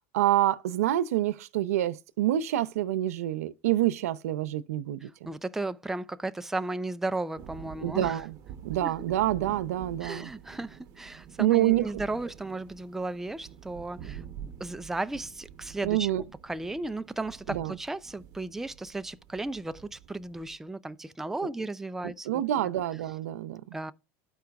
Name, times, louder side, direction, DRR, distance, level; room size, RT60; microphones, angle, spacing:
voice 1, 0.0-5.3 7.8-8.3 8.6-10.3 11.4-11.9 15.8-16.2 17.5-17.8 21.4-21.5 22.0-23.8, right 13 dB, 90° right, 0.4 m, -27 dB
voice 2, 5.0-8.2 8.8-8.9 10.0-14.2 14.6-22.7 23.7-23.9, right 2 dB, 5° right, 0.3 m, -35 dB
sound 1, 7.4-20.6, right 8 dB, 55° right, 0.8 m, -47 dB
12.5 x 4.7 x 2.3 m
supercardioid pair, 110°, 8 cm